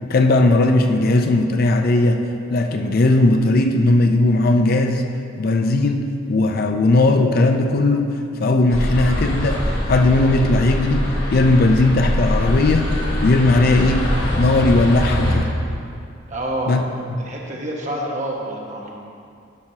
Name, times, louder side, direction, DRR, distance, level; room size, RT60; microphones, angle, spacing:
voice 1, 0.1-2.2 2.5-5.0 5.4-9.6 9.9-12.9 13.2-14.1 14.4-15.5 16.7-16.8 17.1-17.3, left 2 dB, 50° left, 5 dB, 0.4 m, -17 dB
sound 1, 8.7-15.4, equal, 75° left, 2.0 m, -23 dB
voice 2, 16.3-16.8 17.2-18.9, right 1 dB, 40° right, -2 dB, 1.1 m, -27 dB
12.0 x 6.0 x 2.8 m, 2.4 s
head